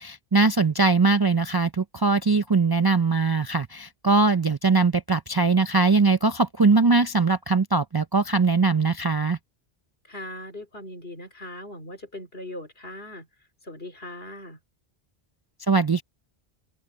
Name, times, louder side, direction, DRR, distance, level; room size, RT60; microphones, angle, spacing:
voice 1, 0.0-9.4 15.7-16.0, right 4 dB, 35° right, 0.4 m, -21 dB
voice 2, 10.1-13.3 13.6-14.6, left 1 dB, 70° left, 3.9 m, -39 dB
open air
omnidirectional pair, 1.0 m